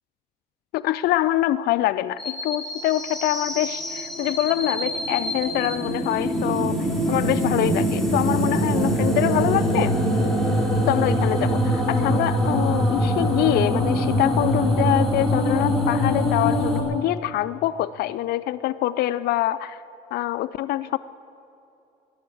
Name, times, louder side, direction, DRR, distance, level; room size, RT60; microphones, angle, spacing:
voice 1, 0.7-9.9 10.9-19.8 20.1-21.0, left 14 dB, 70° left, 13 dB, 0.4 m, -25 dB
sound 1, 2.2-16.8, equal, ahead, 3.4 m, -23 dB
20.5 x 7.7 x 8.6 m, 2.8 s
cardioid pair, 110°, 17 cm